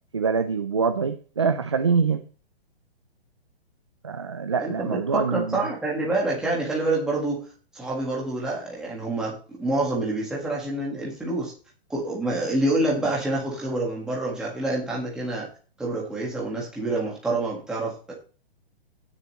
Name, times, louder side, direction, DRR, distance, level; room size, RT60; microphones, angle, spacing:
voice 1, 0.1-2.3 4.0-5.6, right 5 dB, 30° right, 9 dB, 0.4 m, -24 dB
voice 2, 4.6-7.5 7.7-11.5 11.9-15.5 15.8-18.1, right 2 dB, ahead, -4 dB, 1.6 m, -27 dB
16.5 x 6.9 x 3.1 m, 0.38 s
hypercardioid pair, 180°, 32 cm